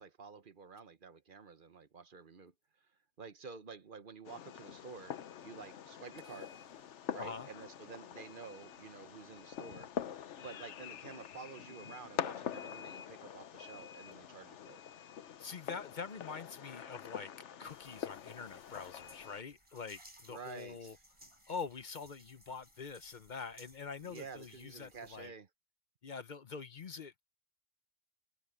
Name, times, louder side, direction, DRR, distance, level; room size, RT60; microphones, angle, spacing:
voice 1, 0.0-2.9 3.2-6.5 7.1-9.9 10.4-14.8 20.3-21.0 24.0-25.5, right 5 dB, 45° right, 1.1 m, -50 dB
Fireworks, 4.2-19.4, left 9 dB, 70° left, 1.1 m, -45 dB
sound 1, 6.2-8.3, equal, 20° left, 7.9 m, -68 dB
voice 2, 7.2-7.5 15.4-17.3 17.6-21.0 21.5-25.3 26.0-27.2, left 5 dB, 45° left, 0.8 m, -45 dB
sound 2, 17.7-25.3, right 1 dB, 25° right, 7.3 m, -61 dB
omnidirectional pair, 1.3 m